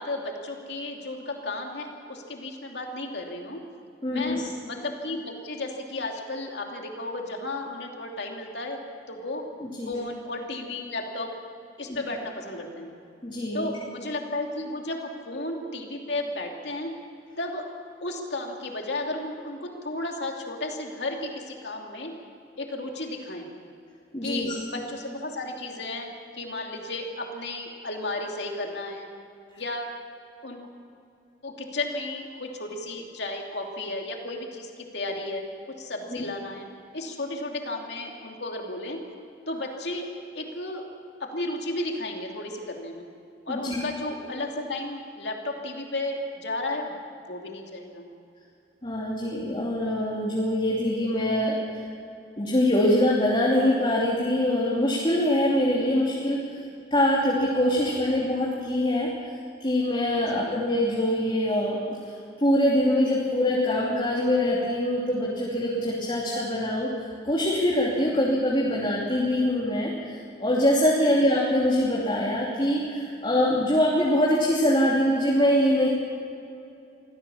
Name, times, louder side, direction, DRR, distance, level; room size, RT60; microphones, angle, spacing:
voice 1, 0.0-3.6 4.1-8.8 9.1-9.4 9.9-11.3 11.8-12.9 13.5-16.9 17.4-17.7 18.0-22.1 22.6-23.5 24.2-26.1 26.3-29.1 29.6-29.9 30.4-30.7 31.4-36.7 36.9-39.0 39.5-40.1 40.3-40.8 41.2-43.1 43.5-47.0 47.2-48.1 57.7-58.1 60.1-60.6 68.0-68.2 71.0-71.3, left 2 dB, 60° left, 1 dB, 2.9 m, -33 dB
voice 2, 4.0-4.4 9.6-9.9 13.2-13.7 24.1-24.5 36.1-36.2 43.5-43.8 48.8-51.6 52.4-56.4 56.9-59.1 59.6-62.0 62.4-75.9, left 1 dB, 25° left, -5 dB, 3.0 m, -24 dB
24.5 x 16.0 x 7.2 m, 2.6 s
head